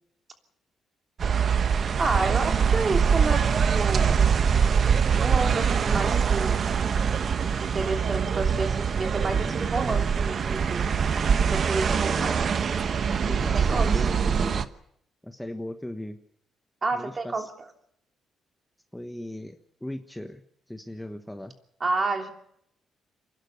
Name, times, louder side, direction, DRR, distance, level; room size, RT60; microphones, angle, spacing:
sound 1, 1.2-14.7, right 6 dB, 50° right, 1.1 m, -23 dB
voice 1, 2.0-4.3 5.1-6.6 7.6-10.8 11.5-12.4 13.5-14.1 14.4-14.5 16.8-17.5 21.8-22.3, right 3 dB, 35° right, 4 dB, 3.2 m, -30 dB
voice 2, 11.9-12.6 13.3-14.7 15.2-16.2 16.9-17.5 18.9-20.4 20.7-21.5, left 1 dB, 5° left, 7 dB, 1.3 m, -37 dB
27.5 x 11.5 x 8.2 m, 0.73 s
cardioid pair, 90°, 0 cm